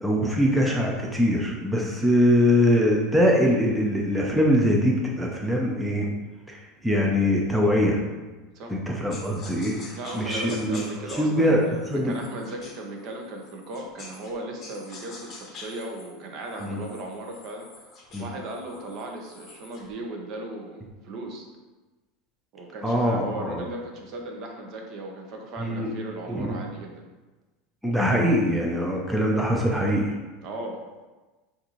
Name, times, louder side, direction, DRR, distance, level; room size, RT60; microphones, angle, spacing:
voice 1, 0.0-6.1 6.5-8.0 8.7-10.8 11.2-12.1 16.6-16.8 18.1-18.2 22.8-23.6 25.6-25.9 26.3-26.6 27.8-30.1, equal, 5° right, -2 dB, 0.5 m, -23 dB
sound 1, 9.1-14.3 14.6-19.9, left 3 dB, 30° left, 0.8 m, -46 dB
voice 2, 10.0-17.8 18.2-21.5 22.5-27.0 30.4-30.8, right 1 dB, 45° right, 2 dB, 0.8 m, -37 dB
6.4 x 2.6 x 3.0 m, 1.2 s
supercardioid pair, 145°, 0 cm